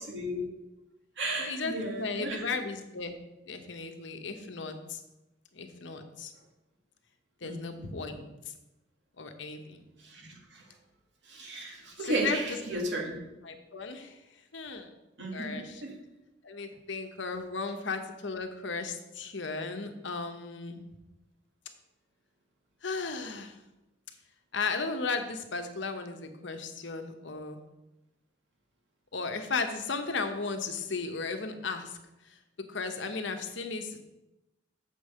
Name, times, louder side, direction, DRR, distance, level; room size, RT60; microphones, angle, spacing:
voice 1, 0.1-0.4 1.2-2.5 7.4-7.9 10.0-10.6 11.2-13.2 15.2-15.9, right 1 dB, 65° right, 0 dB, 2.1 m, -34 dB
voice 2, 1.4-3.2 3.5-5.0 5.5-6.3 7.4-8.3 9.2-9.8 12.0-12.8 13.4-14.2 14.5-14.9 15.3-15.8 16.4-20.8 22.8-23.6 24.5-27.6 29.1-32.0 32.2-32.4 32.7-34.0, left 4 dB, 75° left, 6 dB, 1.0 m, -35 dB
7.2 x 5.4 x 6.6 m, 0.97 s
head